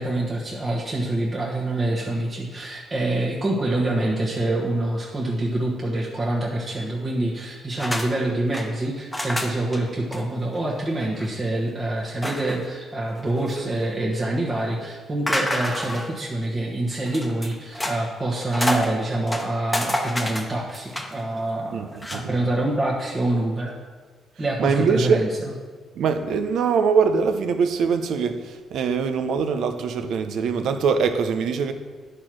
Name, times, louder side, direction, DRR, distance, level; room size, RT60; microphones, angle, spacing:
voice 1, 0.0-23.7 24.4-25.5, right 1 dB, 30° right, -4 dB, 1.3 m, -26 dB
sound 1, 7.8-8.1 8.3-8.7 9.1-9.8 10.1-10.2 10.6-10.7 11.0-11.3 12.2-12.7 13.2-13.9 15.3-16.2 17.1-18.0 18.3-18.9 19.3-21.2 21.9-22.2, left 1 dB, 10° left, 1.1 m, -28 dB
voice 2, 21.7-22.3 24.6-25.2 26.0-31.7, right 5 dB, 75° right, 9 dB, 0.7 m, -23 dB
10.0 x 4.5 x 6.2 m, 1.5 s
cardioid pair, 90°, 0 cm